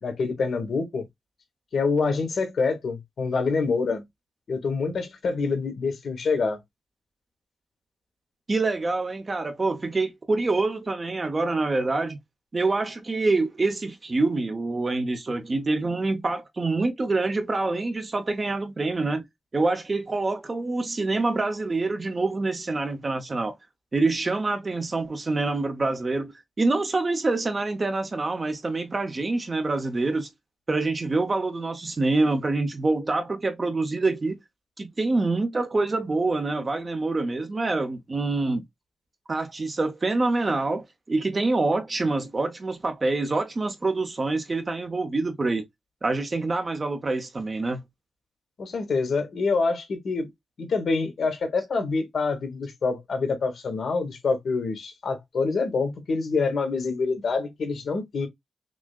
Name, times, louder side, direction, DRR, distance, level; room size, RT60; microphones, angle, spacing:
voice 1, 0.0-1.0 1.7-4.0 4.5-6.6 48.6-50.3 50.6-58.3, left 4 dB, 70° left, 1.2 m, -26 dB
voice 2, 8.5-12.2 12.5-19.2 19.5-23.5 23.9-26.3 26.6-30.3 30.7-34.4 34.8-38.6 39.3-45.6 46.0-47.8, right 3 dB, 35° right, 0.7 m, -26 dB
6.0 x 2.1 x 2.3 m
wide cardioid pair, 100°, 0 cm